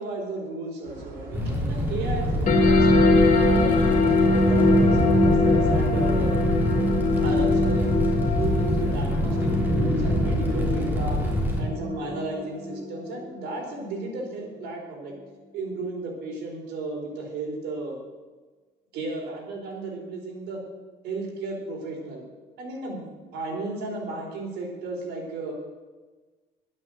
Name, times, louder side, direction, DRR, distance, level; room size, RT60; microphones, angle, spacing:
voice 1, 0.0-4.2 4.4-6.4 7.2-8.0 8.4-11.2 11.6-15.1 15.5-18.0 18.9-20.6 21.0-22.2 22.6-25.5, right 2 dB, 80° right, 1 dB, 4.1 m, -34 dB
sound 1, 0.8-7.3, right 1 dB, 60° right, 4.5 m, -41 dB
Fire, 1.3-11.6, equal, 10° right, 3.4 m, -25 dB
sound 2, 2.5-13.4, left 2 dB, 50° left, 2.7 m, -23 dB
11.0 x 9.8 x 7.7 m, 1.3 s
cardioid pair, 110°, 17 cm